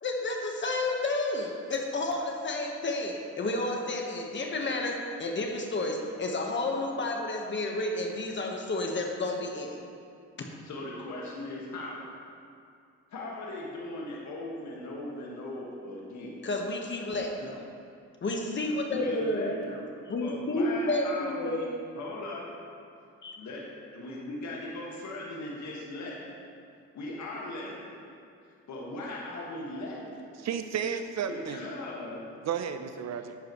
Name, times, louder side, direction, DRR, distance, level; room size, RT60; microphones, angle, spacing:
voice 1, 0.0-9.8 10.4-10.5 16.4-17.6 18.2-19.6 20.1-21.6 23.2-23.4, left 2 dB, 40° left, 1 dB, 1.3 m, -31 dB
voice 2, 10.6-12.0 13.1-16.4 18.9-19.8 20.2-21.7 21.9-22.5 23.4-26.4 26.9-28.0 28.7-30.2 31.3-32.3, left 1 dB, 65° left, -3 dB, 1.8 m, -38 dB
voice 3, 30.4-31.6 32.4-33.4, right 7 dB, 60° right, 9 dB, 0.7 m, -32 dB
11.5 x 8.9 x 3.1 m, 2.4 s
cardioid pair, 90°, 30 cm